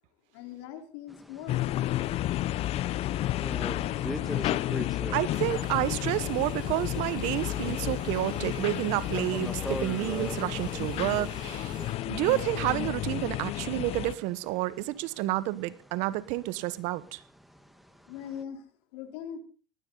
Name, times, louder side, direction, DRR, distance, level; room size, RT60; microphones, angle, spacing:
voice 1, 0.3-2.2 18.0-19.4, left 9 dB, 80° left, 3.9 m, -42 dB
sound 1, 1.1-18.4, equal, ahead, 1.6 m, -44 dB
sound 2, 1.5-14.1, left 14 dB, 50° left, 0.6 m, -31 dB
voice 2, 5.1-11.8 12.1-17.2, right 17 dB, 70° right, 1.2 m, -30 dB
sound 3, 5.4-11.9, right 3 dB, 35° right, 5.0 m, -47 dB
19.0 x 15.5 x 4.0 m
supercardioid pair, 100°, 13 cm